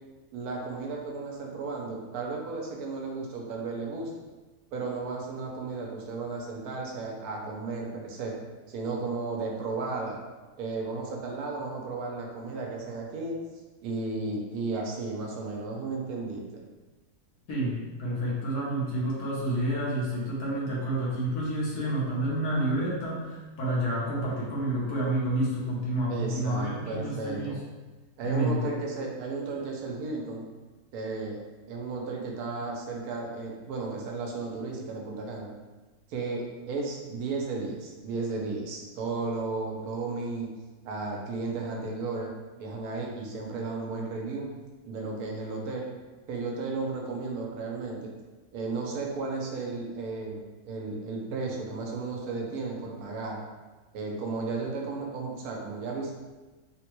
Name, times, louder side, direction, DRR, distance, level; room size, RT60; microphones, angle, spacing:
voice 1, 0.3-4.1 4.7-8.3 8.7-10.2 10.6-13.4 13.8-16.6 26.1-27.6 28.2-30.4 30.9-31.4 31.7-35.5 36.1-40.5 40.8-42.3 42.6-44.5 44.9-45.9 46.3-48.1 48.5-53.4 53.9-56.1, right 3 dB, 80° right, 0 dB, 1.1 m, -34 dB
voice 2, 17.5-27.6 28.2-28.6, right 1 dB, 90° left, -5 dB, 1.4 m, -29 dB
3.6 x 2.1 x 2.9 m, 1.2 s
omnidirectional pair, 1.6 m